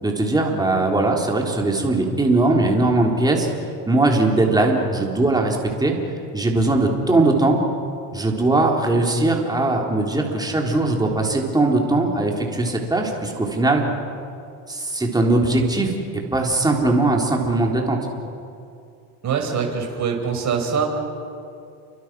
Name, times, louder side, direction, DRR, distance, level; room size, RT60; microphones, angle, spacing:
voice 1, 0.0-3.5 3.9-5.9 6.3-7.6 8.1-13.8 14.7-18.0, right 2 dB, 10° right, 0 dB, 3.7 m, -20 dB
voice 2, 19.2-20.9, right 6 dB, 35° right, 2 dB, 5.6 m, -23 dB
29.0 x 24.0 x 6.2 m, 2.5 s
supercardioid pair, 125°, 48 cm